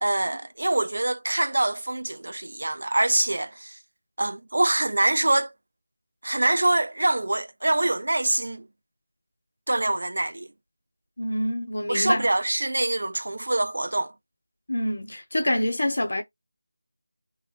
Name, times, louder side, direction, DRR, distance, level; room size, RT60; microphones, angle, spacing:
voice 1, 0.0-3.8 4.2-5.5 6.2-8.7 9.7-10.5 11.9-14.1, right 2 dB, 70° right, 0.4 m, -24 dB
voice 2, 11.2-12.3 14.7-16.2, left 1 dB, 70° left, 1.0 m, -26 dB
3.1 x 2.2 x 3.0 m
figure-of-eight pair, 175°, 0 cm